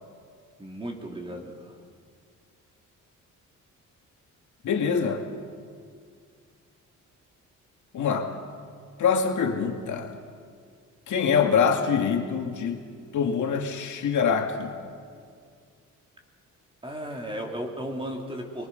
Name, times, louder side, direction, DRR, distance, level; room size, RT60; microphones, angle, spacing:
voice 1, 0.6-1.7 16.8-18.7, equal, 15° right, 1 dB, 2.8 m, -35 dB
voice 2, 4.6-5.2 7.9-8.3 9.0-10.1 11.1-12.8 13.1-14.7, left 6 dB, 70° left, 3 dB, 2.3 m, -24 dB
24.0 x 22.5 x 5.3 m, 2.1 s
cardioid pair, 135°, 31 cm